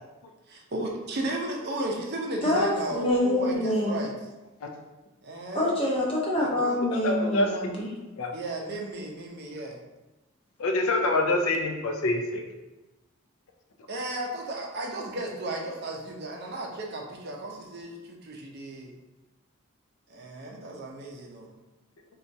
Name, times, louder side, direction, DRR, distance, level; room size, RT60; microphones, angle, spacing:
voice 1, 0.5-4.1 5.2-5.7 6.3-6.8 8.3-9.8 13.9-18.9 20.1-21.5, right 2 dB, 50° right, 0 dB, 0.5 m, -34 dB
voice 2, 2.4-4.0 5.5-7.9, left 1 dB, 25° left, -4 dB, 0.7 m, -26 dB
voice 3, 6.9-7.5 8.2-8.3 10.6-12.4, left 2 dB, 75° left, 3 dB, 0.5 m, -26 dB
4.2 x 2.3 x 2.6 m, 1.1 s
head